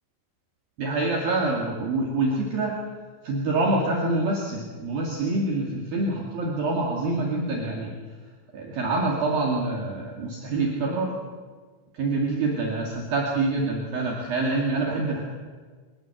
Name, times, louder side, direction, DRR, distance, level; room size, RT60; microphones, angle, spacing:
voice 1, 0.8-2.8 3.2-8.0 8.5-11.2 11.9-15.2, right 2 dB, 55° right, -2 dB, 3.9 m, -26 dB
23.5 x 18.0 x 7.8 m, 1.5 s
omnidirectional pair, 5.6 m